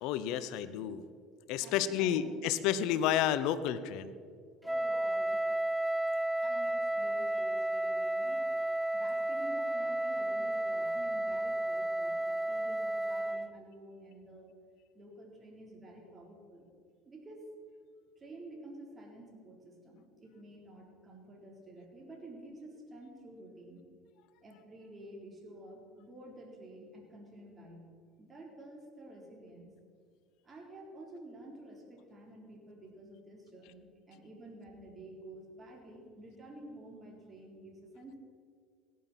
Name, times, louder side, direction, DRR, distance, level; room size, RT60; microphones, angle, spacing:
voice 1, 0.0-1.0 1.5-4.1, left 10 dB, 65° left, 14 dB, 0.8 m, -31 dB
voice 2, 1.6-2.4 4.6-5.4 6.4-8.4 8.9-14.5 14.9-16.7 17.0-17.4 18.2-23.9 24.4-27.8 28.2-29.7 30.4-38.2, right 1 dB, 30° right, 0 dB, 3.9 m, -51 dB
Wind instrument woodwind instrument, 4.6-13.5, right 1 dB, 5° right, 0.4 m, -32 dB
17.5 x 11.0 x 4.4 m, 2.1 s
hypercardioid pair, 65°, 0 cm